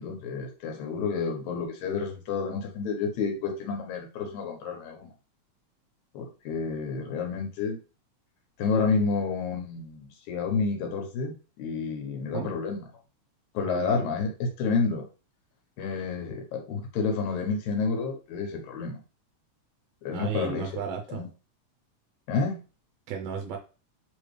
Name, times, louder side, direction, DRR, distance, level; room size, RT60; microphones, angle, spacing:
voice 1, 0.0-5.1 6.1-7.8 8.6-12.8 13.5-15.1 15.8-19.0 20.0-20.7 21.1-21.3 22.3-22.6, left 4 dB, 80° left, 3 dB, 2.4 m, -30 dB
voice 2, 13.6-14.1 20.1-21.2 23.1-23.6, right 7 dB, 75° right, 3 dB, 1.6 m, -34 dB
4.9 x 3.0 x 3.2 m, 0.33 s
omnidirectional pair, 3.3 m